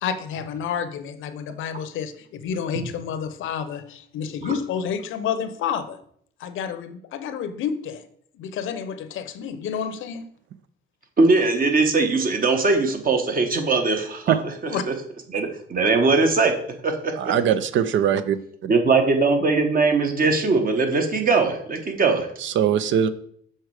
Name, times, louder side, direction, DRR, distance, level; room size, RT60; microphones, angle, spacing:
voice 1, 0.0-6.0 6.4-8.0 8.3-10.3 14.7-14.8, left 7 dB, 80° left, 11 dB, 0.7 m, -29 dB
voice 2, 11.2-14.5 14.9-15.0 15.3-16.5 16.8-17.1 18.6-22.3, right 3 dB, 45° right, 5 dB, 1.3 m, -20 dB
voice 3, 17.2-18.4 22.4-23.1, right 9 dB, 70° right, 13 dB, 0.5 m, -21 dB
6.5 x 4.4 x 4.8 m, 0.65 s
cardioid pair, 90°, 20 cm